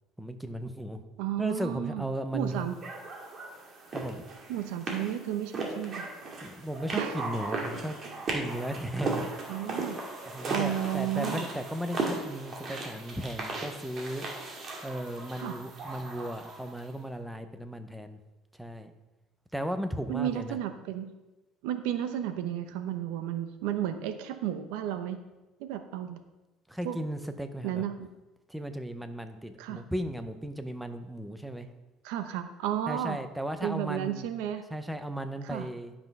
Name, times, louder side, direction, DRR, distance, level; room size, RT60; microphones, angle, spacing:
voice 1, 0.2-1.0 1.4-2.6 3.9-4.3 6.4-8.0 8.3-9.2 10.3-14.3 14.8-18.2 18.6-18.9 19.5-20.6 26.7-27.8 28.5-31.7 32.9-34.3 34.7-35.9, right 1 dB, 5° right, 8 dB, 0.6 m, -36 dB
voice 2, 1.2-2.0 2.3-2.8 4.5-6.1 6.9-7.2 9.5-10.0 10.5-11.5 15.4-15.5 20.1-21.1 21.6-25.2 25.6-26.2 26.8-27.0 27.6-28.1 29.6-29.8 32.0-33.2 33.6-34.6 35.4-35.7, right 11 dB, 90° right, 9 dB, 0.8 m, -33 dB
sound 1, 2.8-16.9, right 3 dB, 30° right, 2.0 m, -37 dB
11.0 x 6.1 x 5.3 m, 1.1 s
cardioid pair, 170°, 0 cm